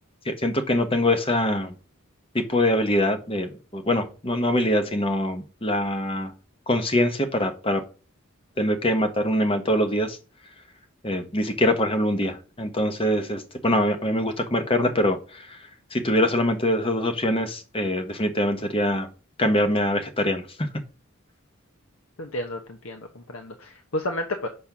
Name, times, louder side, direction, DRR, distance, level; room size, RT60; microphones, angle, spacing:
voice 1, 0.3-1.7 2.3-6.3 6.7-7.8 8.6-10.2 11.0-15.6 15.9-19.1 19.4-20.7, left 1 dB, 25° left, 7 dB, 1.0 m, -24 dB
voice 2, 22.2-24.5, left 1 dB, 75° left, 4 dB, 1.0 m, -31 dB
6.9 x 4.2 x 5.9 m, 0.35 s
head